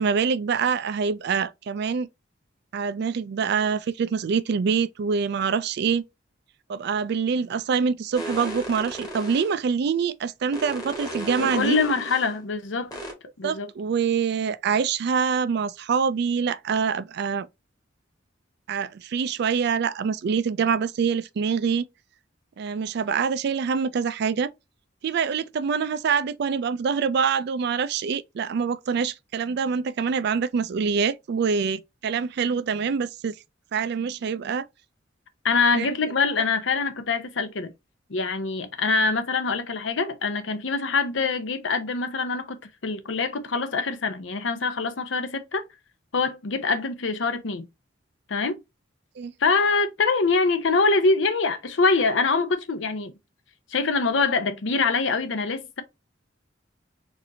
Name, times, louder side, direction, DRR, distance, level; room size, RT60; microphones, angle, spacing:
voice 1, 0.0-2.1 2.7-6.0 6.7-11.8 13.4-17.5 18.7-21.9 22.6-24.5 25.0-33.3 33.7-34.6 35.7-35.9 49.2-49.3, right 6 dB, 60° right, 0.3 m, -25 dB
sound 1, 8.1-9.6 10.5-12.3 12.9-13.1, right 1 dB, 20° left, 1.4 m, -35 dB
voice 2, 11.4-12.9 13.4-13.7 35.4-37.7 38.1-45.6 46.1-47.7 48.3-48.6 49.4-53.1 53.7-55.8, left 4 dB, 70° left, 0.7 m, -24 dB
4.2 x 2.6 x 2.7 m
head